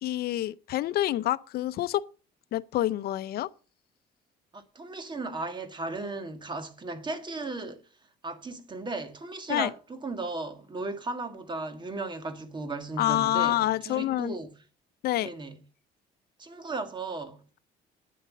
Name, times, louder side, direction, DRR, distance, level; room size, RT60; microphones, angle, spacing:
voice 1, 0.0-2.0 2.5-3.5 9.5-9.7 13.0-14.3 15.0-15.3, left 14 dB, 65° left, 0.6 m, -27 dB
voice 2, 4.5-7.9 8.2-14.5 15.2-15.6 16.4-17.4, right 3 dB, 25° right, 1.9 m, -36 dB
9.3 x 8.0 x 7.5 m
cardioid pair, 110°, 17 cm